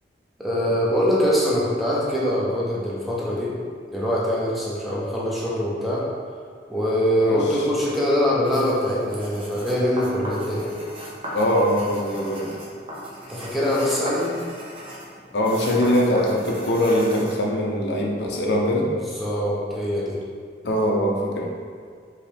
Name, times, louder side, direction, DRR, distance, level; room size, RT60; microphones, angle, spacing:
voice 1, 0.4-3.5 3.9-6.0 6.7-10.8 13.3-14.3 18.9-20.2, equal, ahead, -6 dB, 0.7 m, -23 dB
voice 2, 7.2-7.7 11.3-12.6 15.3-18.9 20.6-21.5, equal, 80° left, -1 dB, 0.7 m, -22 dB
sound 1, 8.4-17.4, right 1 dB, 30° right, 0.8 m, -38 dB
4.9 x 3.1 x 3.4 m, 2.1 s
head